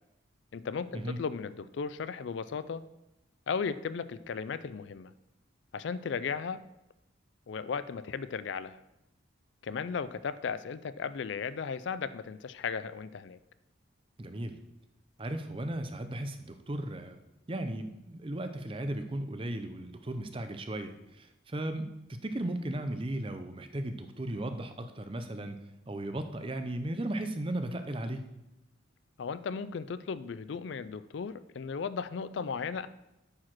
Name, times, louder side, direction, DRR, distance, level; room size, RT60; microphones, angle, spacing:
voice 1, 0.5-2.8 3.5-5.1 5.7-6.6 7.5-8.8 9.6-13.4 29.2-32.9, left 5 dB, 65° left, 14 dB, 0.4 m, -36 dB
voice 2, 14.2-14.6 15.2-17.2 17.5-28.3, right 1 dB, 25° right, 8 dB, 0.6 m, -36 dB
8.6 x 4.8 x 6.1 m, 0.92 s
head